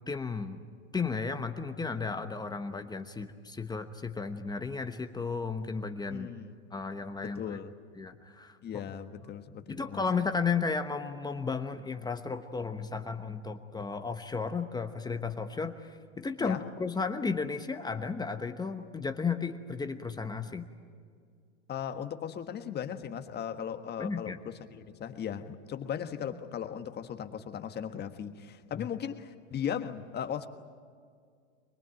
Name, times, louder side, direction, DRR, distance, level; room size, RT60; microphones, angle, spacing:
voice 1, 0.1-0.6 0.9-6.3 6.7-7.6 8.0-8.6 9.7-20.7 24.0-24.4 28.7-28.9, left 5 dB, 10° left, 8 dB, 1.0 m, -34 dB
voice 2, 6.1-6.5 7.2-7.8 8.6-10.0 16.4-16.6 21.7-30.5, left 8 dB, 25° left, 8 dB, 1.5 m, -37 dB
25.0 x 19.5 x 9.1 m, 2.1 s
hypercardioid pair, 115°, 36 cm